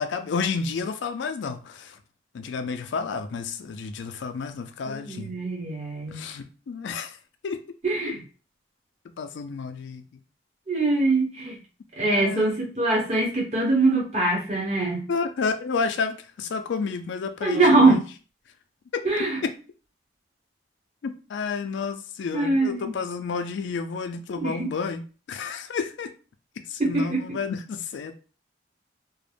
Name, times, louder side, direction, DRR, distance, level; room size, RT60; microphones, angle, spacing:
voice 1, 0.0-2.0 2.3-5.4 6.1-7.2 7.4-7.6 8.1-8.2 9.2-10.0 12.1-12.5 15.1-18.0 18.9-19.5 21.0-26.1 26.7-28.1, left 5 dB, 75° left, 7 dB, 0.3 m, -31 dB
voice 2, 4.8-6.2 7.8-8.2 10.7-11.6 12.0-15.0 17.4-18.0 19.0-19.4 22.3-22.9 24.4-24.7 26.8-27.4, right 2 dB, 35° right, -2 dB, 0.9 m, -23 dB
2.4 x 2.0 x 3.2 m, 0.36 s
head